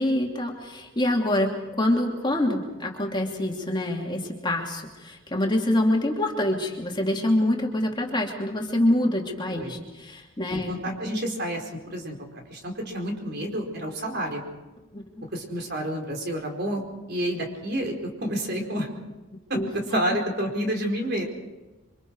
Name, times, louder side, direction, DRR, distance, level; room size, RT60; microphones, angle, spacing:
voice 1, 0.0-10.7 14.9-15.0 19.5-19.7, left 1 dB, 20° left, 0 dB, 2.8 m, -25 dB
voice 2, 10.5-12.1 12.5-14.4 15.3-16.8 17.1-17.9 18.2-18.9 19.5-21.2, equal, 50° right, 2 dB, 4.8 m, -29 dB
29.0 x 25.0 x 4.8 m, 1.1 s
head